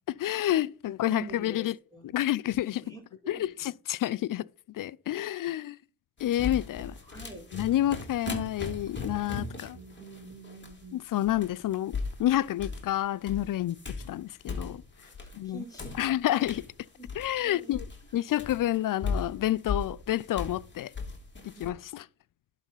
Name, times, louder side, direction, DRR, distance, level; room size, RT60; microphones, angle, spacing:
voice 1, 0.2-1.8 2.0-2.8 3.3-5.8 6.2-6.9 7.5-9.8 10.9-14.8 15.3-15.6 16.0-16.6 17.2-17.9 18.1-20.9 21.4-22.0, left 13 dB, 50° left, 0.4 m, -29 dB
voice 2, 1.1-2.1 2.8-3.7 6.8-7.5 9.7-11.0 15.0-16.0 17.0-17.1 17.4-17.8 21.5-21.8, right 2 dB, 10° left, 5.4 m, -46 dB
sound 1, 6.2-10.8 11.2-12.9 13.3-15.5 15.7-21.7, left 4 dB, 25° left, 2.8 m, -38 dB
11.0 x 4.1 x 5.6 m
supercardioid pair, 55°, 45 cm